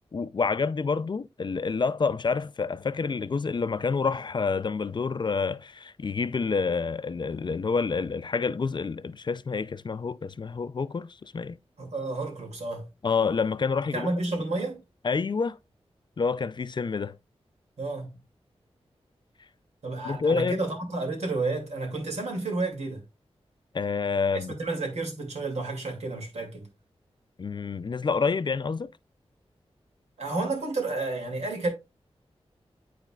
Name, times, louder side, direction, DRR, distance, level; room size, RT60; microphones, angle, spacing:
voice 1, 0.1-11.6 13.0-14.1 15.0-15.6 16.2-17.2 20.0-20.6 23.7-24.5 27.4-28.9, left 5 dB, 45° left, 0.4 m, -28 dB
voice 2, 11.8-12.9 13.9-14.8 17.8-18.1 19.8-23.0 24.5-26.7 30.2-31.7, right 2 dB, 90° right, 2.5 m, -31 dB
11.5 x 4.1 x 2.4 m
wide cardioid pair, 90°, 11 cm